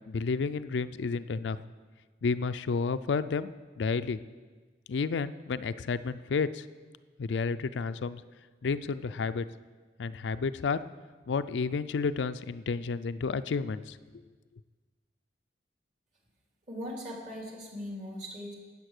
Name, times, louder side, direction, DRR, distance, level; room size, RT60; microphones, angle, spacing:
voice 1, 0.1-1.6 2.2-4.2 4.9-6.7 7.2-8.2 8.6-9.5 10.0-10.8 11.3-14.0, left 5 dB, 75° left, 12 dB, 0.4 m, -31 dB
voice 2, 16.7-18.5, equal, 40° right, -1 dB, 3.2 m, -39 dB
12.5 x 8.4 x 6.6 m, 1.4 s
head